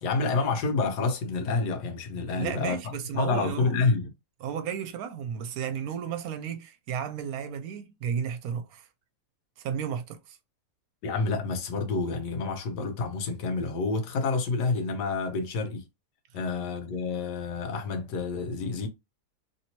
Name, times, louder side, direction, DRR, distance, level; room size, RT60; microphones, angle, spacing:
voice 1, 0.0-2.8 3.1-4.1 11.0-15.8 16.3-18.9, left 4 dB, 90° left, 1.4 m, -28 dB
voice 2, 2.3-3.7 4.4-8.9 9.6-10.4, right 8 dB, 70° right, 1.0 m, -33 dB
3.3 x 2.9 x 2.8 m
omnidirectional pair, 1.7 m